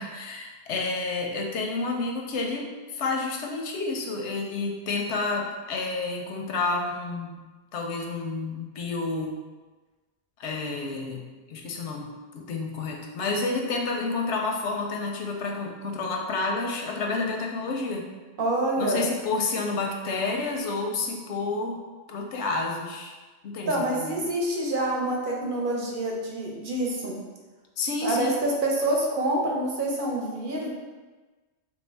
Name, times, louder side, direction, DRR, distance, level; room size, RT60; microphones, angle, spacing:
voice 1, 0.0-7.4 7.7-9.4 10.4-11.2 11.5-18.1 18.8-21.8 22.1-23.2 23.4-24.2 27.8-28.4, left 3 dB, 85° left, 1 dB, 0.9 m, -30 dB
voice 2, 18.4-19.0 23.7-27.2 28.0-30.7, right 1 dB, 55° right, -2 dB, 0.8 m, -27 dB
3.2 x 2.6 x 3.3 m, 1.3 s
omnidirectional pair, 1.1 m